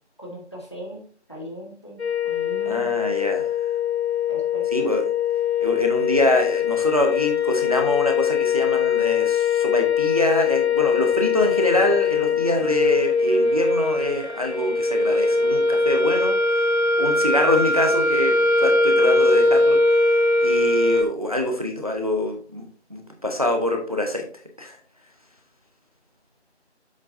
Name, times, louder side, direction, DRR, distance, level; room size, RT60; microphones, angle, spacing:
voice 1, 0.2-1.0 1.3-2.9 4.3-4.6, equal, 25° left, -1 dB, 1.4 m, -38 dB
sound 1, 2.0-21.0, left 4 dB, 70° left, 1.5 m, -21 dB
voice 2, 2.7-3.5 4.7-5.0 5.6-16.7 17.0-20.1 20.4-22.6 22.9-24.2 24.6-24.8, left 1 dB, 30° right, 4 dB, 0.9 m, -25 dB
7.5 x 7.4 x 2.6 m, 0.42 s
figure-of-eight pair, 175°, 34 cm